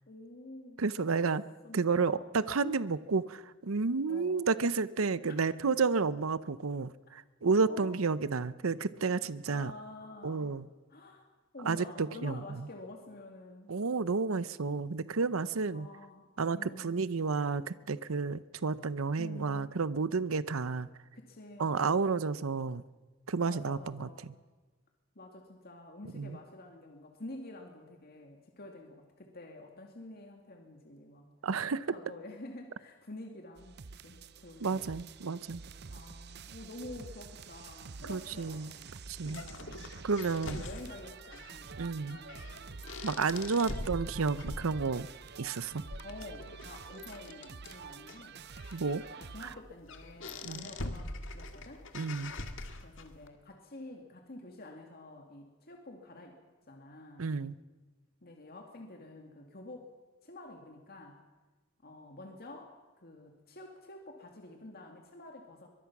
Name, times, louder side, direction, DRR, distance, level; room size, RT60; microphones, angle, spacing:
voice 1, 0.1-1.2 1.6-2.5 4.1-4.5 5.3-5.4 5.6-5.8 7.6-7.9 9.5-10.5 10.9-11.3 11.5-13.7 15.7-17.0 19.2-19.7 21.1-22.0 23.4-24.3 25.2-31.3 31.9-34.9 35.9-38.9 39.3-39.9 40.3-42.5 46.0-48.6 49.2-51.9 52.8-56.4 56.7-57.3 58.2-59.9 60.2-61.2 61.8-65.7, left 2 dB, 50° left, 2 dB, 2.3 m, -49 dB
voice 2, 0.8-1.4 1.7-9.7 10.2-10.6 11.6-12.7 13.7-15.9 16.4-20.9 21.6-22.8 23.3-24.1 26.2-26.4 31.4-31.9 34.6-35.6 38.1-38.7 39.1-39.4 40.0-40.6 41.8-42.2 43.0-45.1 45.4-45.8 48.7-49.0 50.4-50.7 51.9-52.3 57.2-57.5, right 4 dB, 90° right, 16 dB, 0.7 m, -31 dB
sound 1, 33.6-49.6, right 5 dB, 55° right, 0.7 m, -48 dB
sound 2, 38.3-53.3, left 2 dB, 65° left, 1.9 m, -44 dB
23.5 x 22.0 x 6.1 m, 1.2 s
head